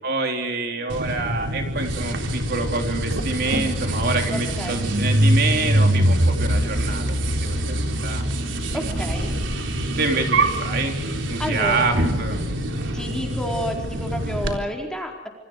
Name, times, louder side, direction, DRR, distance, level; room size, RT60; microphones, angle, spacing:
voice 1, 0.0-8.2 8.7-9.5 10.0-11.0 11.3-12.4, right 3 dB, 55° right, 4 dB, 3.7 m, -27 dB
sound 1, 0.9-14.5, right 1 dB, 75° right, 3.7 m, -24 dB
voice 2, 4.3-4.8 8.7-9.3 11.4-12.1 12.9-15.3, equal, 5° left, 1 dB, 4.6 m, -30 dB
28.5 x 26.5 x 4.9 m, 1.1 s
head